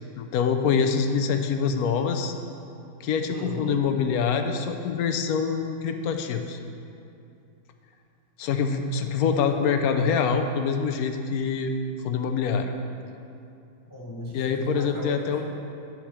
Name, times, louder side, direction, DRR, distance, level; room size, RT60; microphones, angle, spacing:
voice 1, 0.2-2.3 3.0-6.6 8.4-11.7 12.0-12.7 14.3-15.4, left 6 dB, 75° left, 6 dB, 0.8 m, -25 dB
voice 2, 3.3-3.8 13.9-15.4, equal, 30° left, -3 dB, 0.4 m, -36 dB
9.2 x 4.9 x 7.3 m, 2.6 s
omnidirectional pair, 2.1 m